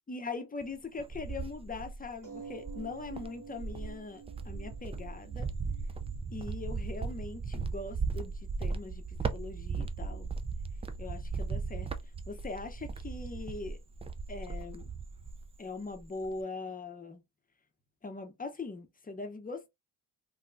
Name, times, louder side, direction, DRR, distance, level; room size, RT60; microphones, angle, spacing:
voice 1, 0.1-5.5 6.3-10.3 11.0-11.9 12.3-13.8 14.3-14.9 15.6-17.2 18.0-19.7, left 3 dB, 20° left, 0.7 m, -41 dB
Cricket, 0.6-2.1 2.6-15.6 15.9-16.4, right 4 dB, 15° right, 0.3 m, -37 dB
sound 1, 2.2-7.2 8.0-8.1 8.4-8.5, right 5 dB, 45° right, 1.7 m, -50 dB
3.6 x 2.3 x 2.5 m
supercardioid pair, 70°, 47 cm